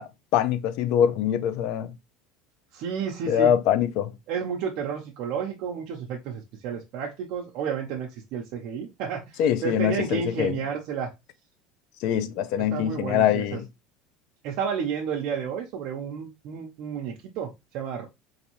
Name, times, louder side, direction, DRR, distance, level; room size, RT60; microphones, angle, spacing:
voice 1, 0.0-1.9 3.2-4.1 9.4-10.6 12.0-13.6, left 9 dB, 60° left, 0.4 m, -24 dB
voice 2, 2.7-3.5 4.3-11.1 12.7-13.6 14.4-18.1, right 7 dB, 55° right, 0.6 m, -31 dB
4.0 x 2.6 x 2.9 m
cardioid pair, 150°, 0 cm